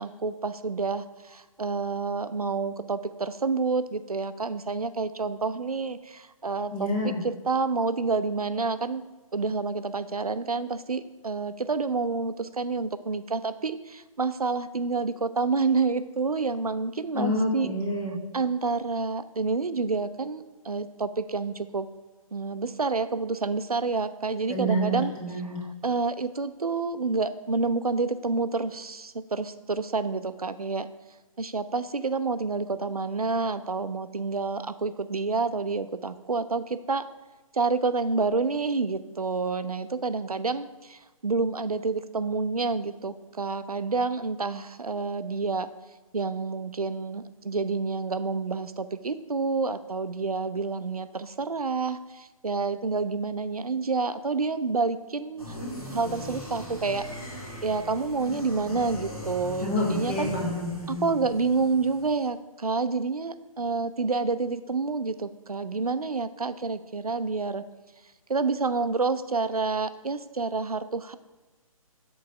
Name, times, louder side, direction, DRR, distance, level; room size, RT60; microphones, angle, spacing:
voice 1, 0.0-9.0 9.3-17.7 18.3-21.9 22.3-25.1 25.8-30.9 31.4-37.0 37.5-45.7 46.1-55.6 55.9-57.0 57.6-60.3 60.9-67.6 68.3-71.2, right 4 dB, 85° right, 12 dB, 0.4 m, -28 dB
voice 2, 6.7-7.2 17.1-18.2 24.5-25.6 59.6-61.2, equal, 20° left, -3 dB, 0.8 m, -28 dB
sound 1, 55.4-62.3, left 1 dB, 80° left, 1.8 m, -39 dB
6.3 x 3.9 x 5.5 m, 1.1 s
figure-of-eight pair, 135°, 19 cm